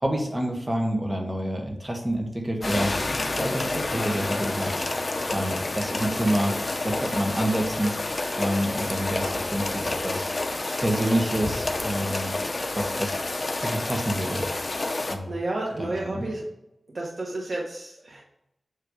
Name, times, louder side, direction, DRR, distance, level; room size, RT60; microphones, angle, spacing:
voice 1, 0.0-2.9 3.3-4.8 5.3-6.6 6.8-7.9 8.4-10.3 10.8-12.4 12.7-13.2 13.6-14.4 15.1-15.3 15.8-16.3, right 1 dB, 20° right, 2 dB, 1.5 m, -28 dB
sound 1, 2.6-15.2, left 2 dB, 40° left, 0.7 m, -29 dB
voice 2, 15.0-16.4 16.9-18.2, right 2 dB, 65° right, -3 dB, 1.2 m, -31 dB
8.1 x 3.3 x 5.0 m, 0.86 s
wide cardioid pair, 70°, 0 cm